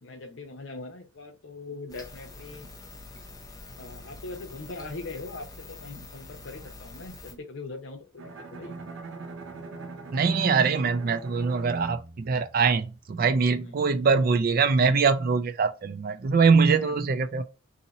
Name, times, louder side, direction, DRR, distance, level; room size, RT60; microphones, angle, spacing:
voice 1, 0.0-2.7 3.8-8.2 8.5-8.8 13.6-13.7 16.6-17.0, left 3 dB, 65° left, 0.8 m, -41 dB
sound 1, 1.9-7.3, left 2 dB, 20° left, 0.6 m, -45 dB
Bowed string instrument, 8.2-13.2, right 3 dB, 70° right, 0.7 m, -41 dB
voice 2, 10.1-17.4, right 5 dB, 45° right, 0.3 m, -23 dB
2.8 x 2.8 x 3.9 m
head